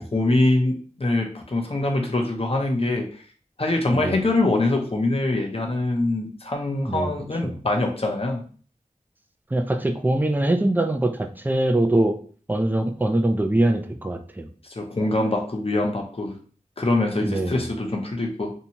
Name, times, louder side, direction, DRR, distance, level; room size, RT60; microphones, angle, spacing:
voice 1, 0.0-3.1 3.6-8.4 14.8-16.3 16.8-18.5, left 2 dB, 45° left, 2 dB, 0.7 m, -24 dB
voice 2, 3.9-4.3 6.9-7.1 7.4-7.6 9.5-12.2 12.5-14.5 17.2-17.7, right 1 dB, 15° right, 6 dB, 0.4 m, -23 dB
2.7 x 2.2 x 2.8 m, 0.42 s
wide cardioid pair, 55°, 14 cm